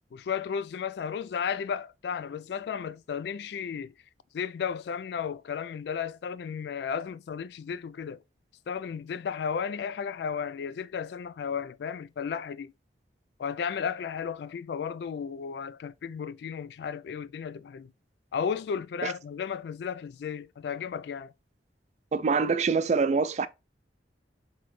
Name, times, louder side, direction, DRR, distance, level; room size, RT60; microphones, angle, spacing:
voice 1, 0.1-3.9 4.3-8.2 8.7-12.7 13.4-17.9 18.3-21.3, left 7 dB, 65° left, 0.3 m, -34 dB
voice 2, 22.1-23.5, right 4 dB, 40° right, 0.3 m, -25 dB
3.8 x 3.8 x 3.1 m
head